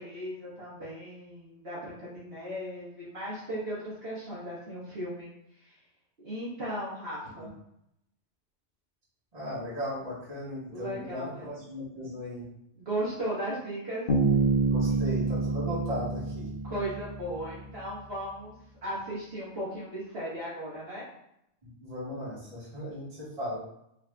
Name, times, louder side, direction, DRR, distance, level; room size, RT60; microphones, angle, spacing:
voice 1, 0.0-5.3 5.6-5.7 6.2-7.5 10.7-11.4 12.7-14.0 14.9-15.0 16.6-21.1, right 1 dB, 55° right, -8 dB, 1.6 m, -36 dB
voice 2, 9.3-12.4 14.7-16.5 21.6-23.6, left 1 dB, 30° right, -8 dB, 1.6 m, -37 dB
Bass guitar, 14.1-17.7, right 3 dB, 45° left, 0.9 m, -27 dB
5.1 x 3.4 x 2.3 m, 0.79 s
omnidirectional pair, 1.3 m